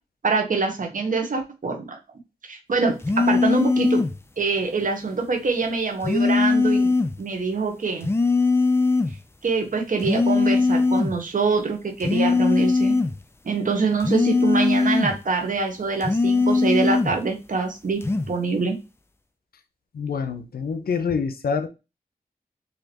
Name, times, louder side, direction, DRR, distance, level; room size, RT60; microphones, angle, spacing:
voice 1, 0.2-2.0 2.4-4.0 4.4-8.1 9.4-12.9 13.4-18.0 18.3-18.7, right 4 dB, 60° right, 1.0 m, -25 dB
sound 1, 3.0-4.2 6.0-7.2 8.0-9.2 10.0-11.2 12.0-13.2 14.0-15.2 16.0-17.2 18.0-18.3, left 3 dB, 15° left, 0.3 m, -20 dB
voice 2, 19.9-21.7, left 5 dB, 80° left, 0.6 m, -26 dB
4.2 x 2.8 x 2.9 m
wide cardioid pair, 80°, 16 cm